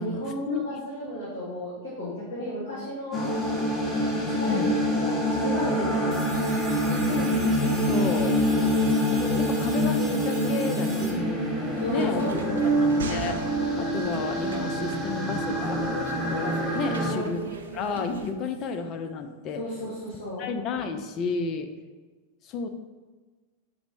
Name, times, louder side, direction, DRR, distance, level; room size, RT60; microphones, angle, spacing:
voice 1, 0.0-3.2 4.4-7.3 11.6-12.9 16.8-17.3 19.5-20.5, equal, 65° left, -7 dB, 1.0 m, -33 dB
sound 1, 3.1-17.1, equal, 10° left, 0.9 m, -26 dB
sound 2, 6.1-11.1, right 2 dB, 15° right, 0.8 m, -42 dB
voice 2, 7.1-8.4 9.1-12.2 12.6-13.4 13.8-15.8 16.3-17.4 17.7-19.6 20.4-21.7 22.4-22.7, left 5 dB, 35° left, 6 dB, 0.4 m, -32 dB
sound 3, 11.6-18.3, right 4 dB, 65° right, 0.3 m, -39 dB
4.0 x 2.0 x 4.4 m, 1.3 s
figure-of-eight pair, 90°, 0 cm